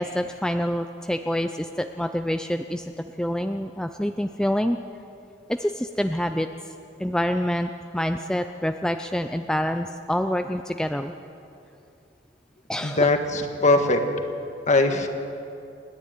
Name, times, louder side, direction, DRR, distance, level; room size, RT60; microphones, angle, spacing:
voice 1, 0.0-4.8 5.5-6.5 7.0-11.1 12.7-13.1, equal, 5° left, 7 dB, 0.5 m, -27 dB
voice 2, 12.8-14.0 14.7-15.1, left 2 dB, 40° left, 5 dB, 1.7 m, -21 dB
29.5 x 10.5 x 9.4 m, 2.7 s
head